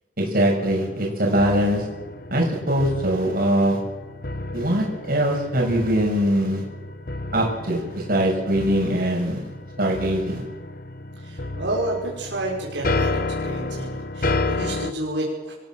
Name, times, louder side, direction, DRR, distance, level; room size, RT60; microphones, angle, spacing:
voice 1, 0.2-1.8 2.3-3.8 4.5-6.6 7.3-9.4 9.8-10.4, right 1 dB, 50° right, -1 dB, 7.3 m, -22 dB
sound 1, 0.6-14.9, left 2 dB, 50° left, 1.1 m, -31 dB
voice 2, 11.2-15.5, right 1 dB, 70° right, -3 dB, 5.8 m, -30 dB
26.5 x 16.0 x 7.8 m, 1.3 s
head